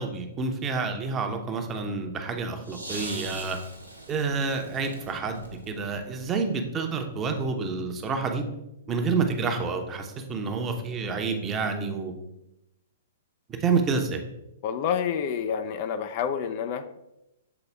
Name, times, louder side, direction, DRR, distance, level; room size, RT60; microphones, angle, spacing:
voice 1, 0.0-3.6 4.1-8.4 8.9-12.1 13.5-14.2, right 4 dB, 20° right, 4 dB, 0.8 m, -28 dB
sound 1, 2.6-6.6 7.7-7.8, right 1 dB, 85° right, 1.0 m, -42 dB
voice 2, 14.6-17.1, left 7 dB, 40° left, 9 dB, 0.4 m, -29 dB
7.1 x 4.1 x 3.4 m, 0.88 s
figure-of-eight pair, 110°, 0 cm